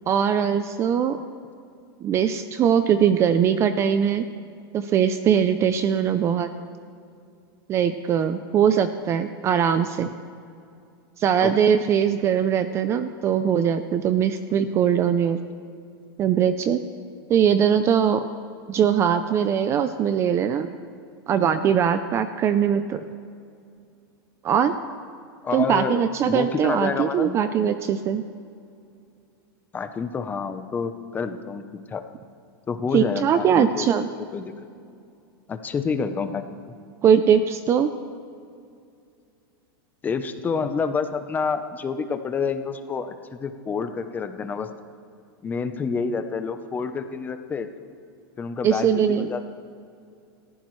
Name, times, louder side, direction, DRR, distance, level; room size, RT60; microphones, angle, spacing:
voice 1, 0.1-1.2 2.0-4.3 4.7-6.5 7.7-10.1 11.2-15.4 16.2-16.8 17.3-18.2 18.7-20.7 21.3-23.0 24.4-24.8 25.5-28.2 32.9-34.1 37.0-37.9 48.6-49.3, right 8 dB, 20° right, 10 dB, 0.5 m, -21 dB
voice 2, 25.4-26.0 26.3-27.4 29.7-31.6 31.9-32.0 32.7-33.9 34.3-34.5 35.5-36.6 40.0-44.7 45.4-47.7 48.4-49.5, left 5 dB, 15° left, 9 dB, 0.7 m, -28 dB
29.0 x 14.5 x 3.2 m, 2.4 s
supercardioid pair, 160°, 13 cm